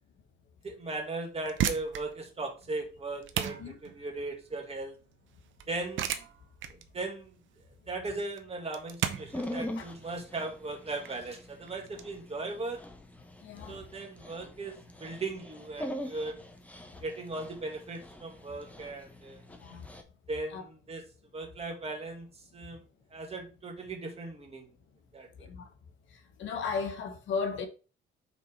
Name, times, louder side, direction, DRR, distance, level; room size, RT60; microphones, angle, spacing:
voice 1, 0.6-5.0 5.7-6.1 6.7-7.3 7.9-12.8 13.7-16.4 17.0-19.4 20.3-21.1 21.3-22.3 22.5-22.8 23.1-24.7 25.1-25.5, right 3 dB, 30° right, 2.2 m, -38 dB
sound 1, 1.3-12.0, right 10 dB, 75° right, 0.8 m, -37 dB
Dog, 9.2-20.0, left 1 dB, 5° left, 1.2 m, -43 dB
voice 2, 13.4-13.7 19.6-19.9 20.5-20.6 25.4-25.7 26.4-27.7, left 5 dB, 75° left, 1.3 m, -35 dB
5.9 x 4.0 x 4.7 m
cardioid pair, 90°, 20 cm